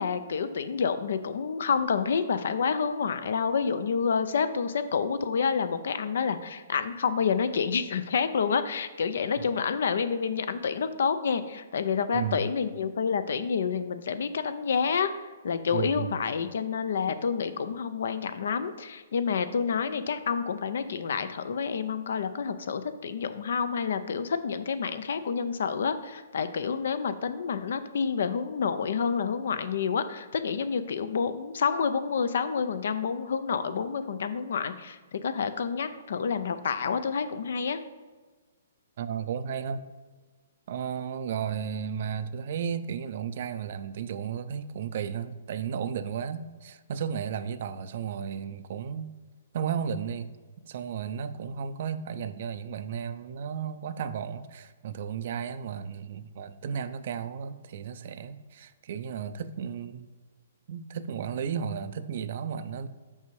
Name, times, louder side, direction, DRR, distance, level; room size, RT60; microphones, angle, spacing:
voice 1, 0.0-15.1 15.4-37.8, left 6 dB, 70° left, 11 dB, 0.5 m, -28 dB
voice 2, 12.1-12.5 15.7-16.1 39.0-39.8 40.7-49.1 49.5-50.3 50.7-60.1 60.7-62.9, right 7 dB, 55° right, 13 dB, 0.4 m, -34 dB
5.4 x 5.0 x 4.7 m, 1.3 s
hypercardioid pair, 140°, 0 cm